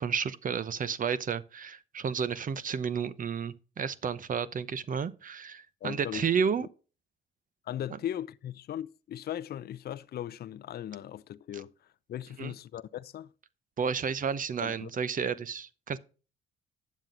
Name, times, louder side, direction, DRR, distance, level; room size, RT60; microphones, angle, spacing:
voice 1, 0.0-6.7 12.4-12.5 13.8-16.0, right 6 dB, 45° right, 0.8 m, -31 dB
voice 2, 5.8-6.7 7.7-11.7 12.1-13.3 14.6-14.9, left 11 dB, 55° left, 0.5 m, -38 dB
9.3 x 7.3 x 3.8 m
cardioid pair, 90°, 20 cm